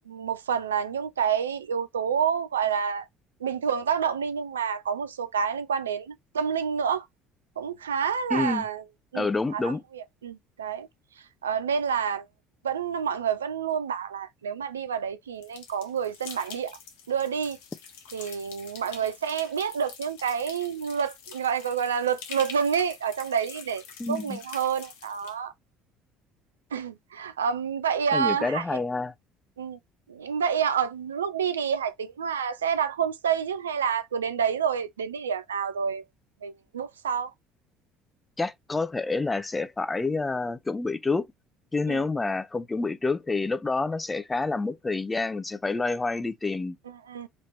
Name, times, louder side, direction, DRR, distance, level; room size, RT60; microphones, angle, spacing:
voice 1, 0.1-3.1 3.4-7.0 7.6-8.8 9.1-10.9 11.4-12.3 12.6-16.8 17.1-17.6 18.1-23.8 24.1-25.5 26.7-28.8 29.6-29.8 30.1-36.0 36.4-37.3 41.9-42.1 46.9-47.3, right 7 dB, 80° right, 0.3 m, -28 dB
voice 2, 8.3-8.7 9.1-9.8 24.0-24.4 28.1-29.1 38.4-41.3 41.7-46.8, left 3 dB, 20° left, 0.5 m, -28 dB
sound 1, 15.4-25.3, left 6 dB, 70° left, 0.7 m, -46 dB
3.1 x 2.8 x 3.1 m
figure-of-eight pair, 60°, 0 cm